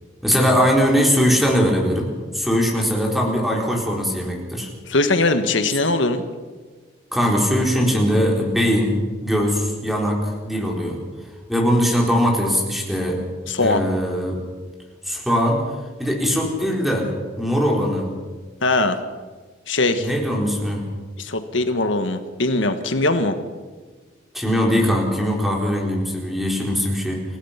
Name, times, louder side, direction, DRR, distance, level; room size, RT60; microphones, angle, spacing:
voice 1, 0.2-4.7 7.1-11.0 11.5-13.2 13.6-14.4 15.0-15.6 16.0-17.1 17.4-18.1 20.0-20.9 24.3-27.2, equal, ahead, 0 dB, 4.2 m, -21 dB
voice 2, 4.9-6.2 13.5-13.8 18.6-19.0 19.7-20.1 21.2-23.4, left 2 dB, 70° left, 8 dB, 1.6 m, -20 dB
29.0 x 16.0 x 5.9 m, 1.4 s
head